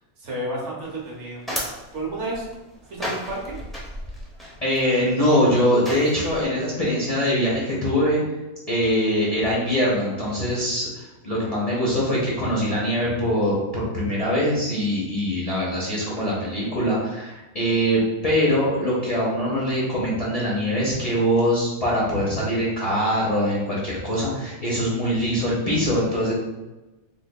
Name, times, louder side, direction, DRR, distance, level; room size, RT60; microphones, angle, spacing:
voice 1, 0.2-1.4 1.9-2.5 2.9-3.6, right 1 dB, 65° right, -3 dB, 1.1 m, -31 dB
sound 1, 0.8-6.4, equal, ahead, 0.4 m, -35 dB
voice 2, 4.6-8.2 8.7-26.3, equal, 35° left, -7 dB, 0.7 m, -23 dB
3.3 x 3.2 x 2.2 m, 1.1 s
omnidirectional pair, 1.4 m